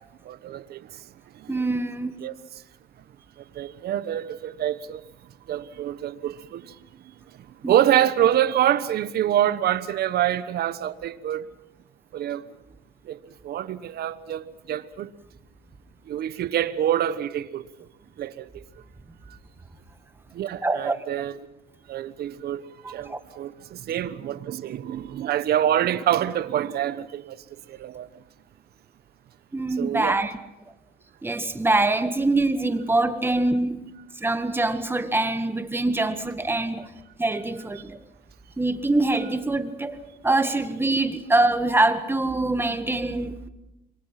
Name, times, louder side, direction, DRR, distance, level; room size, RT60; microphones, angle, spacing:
voice 1, 0.3-0.8 1.5-1.6 2.2-2.3 3.6-5.0 5.5-6.6 7.7-11.4 12.1-12.4 13.1-13.2 13.4-15.1 16.1-17.6 18.2-18.5 20.3-21.4 21.9-22.6 22.9-27.3 27.7-28.1 29.8-30.2, right 11 dB, 65° right, 1.2 m, -26 dB
voice 2, 1.5-2.2 7.6-7.7 20.6-21.0 22.8-23.2 29.5-30.4 31.2-33.9 34.2-36.9 37.2-38.0 38.6-43.5, right 2 dB, 10° right, 1.8 m, -24 dB
27.0 x 22.5 x 6.0 m
cardioid pair, 105°, 18 cm